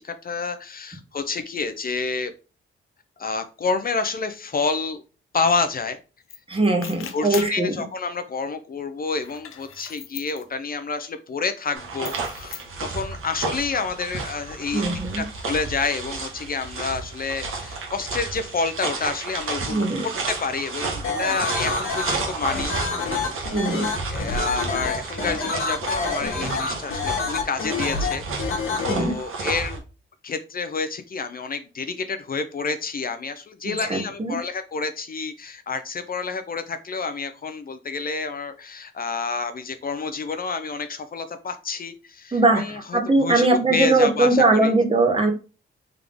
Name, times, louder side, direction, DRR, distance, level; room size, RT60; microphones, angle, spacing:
voice 1, 0.0-2.3 3.2-5.0 5.3-6.0 7.1-14.9 15.1-23.8 24.1-29.8 30.2-44.7, left 4 dB, 45° left, 0.5 m, -29 dB
sound 1, 6.3-6.4 6.6-7.6 9.1-10.4 12.1-12.7, left 9 dB, 90° left, 0.6 m, -38 dB
voice 2, 6.5-7.8 14.7-15.2 19.7-20.1 23.5-23.9 28.9-29.1 33.6-34.4 42.3-42.6 42.9-45.3, right 2 dB, 25° right, 1.0 m, -20 dB
sound 2, 11.7-29.8, right 3 dB, 75° right, 1.2 m, -32 dB
sound 3, 21.0-28.9, left 4 dB, 70° left, 1.3 m, -27 dB
3.7 x 3.5 x 3.4 m
cardioid pair, 85°, 21 cm